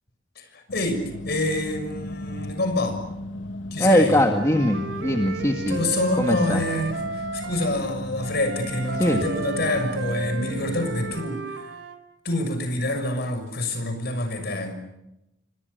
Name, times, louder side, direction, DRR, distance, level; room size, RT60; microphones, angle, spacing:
voice 1, 0.4-3.0 3.7-4.2 5.7-11.4 12.2-14.7, left 1 dB, 60° left, 8 dB, 6.6 m, -27 dB
sound 1, 0.7-11.2, left 1 dB, 75° left, 1.3 m, -36 dB
voice 2, 3.8-5.8 6.2-6.6 9.0-9.2, left 1 dB, 15° left, 3 dB, 2.1 m, -21 dB
Wind instrument woodwind instrument, 4.3-7.7 8.2-12.0, right 3 dB, 70° right, 3.5 m, -34 dB
30.0 x 25.0 x 6.9 m, 0.89 s
head